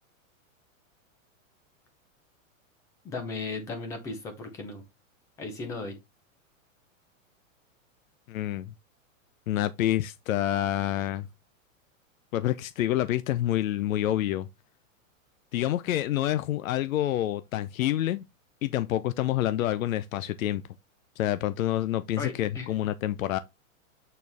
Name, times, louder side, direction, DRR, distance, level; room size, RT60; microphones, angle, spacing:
voice 1, 3.0-4.8 5.4-6.0 22.2-22.7, left 3 dB, 10° left, 0.6 m, -36 dB
voice 2, 8.3-8.7 9.5-11.3 12.3-14.5 15.5-18.2 18.6-20.6 21.2-23.4, left 13 dB, 80° left, 0.7 m, -27 dB
8.4 x 4.5 x 3.4 m
supercardioid pair, 175°, 40 cm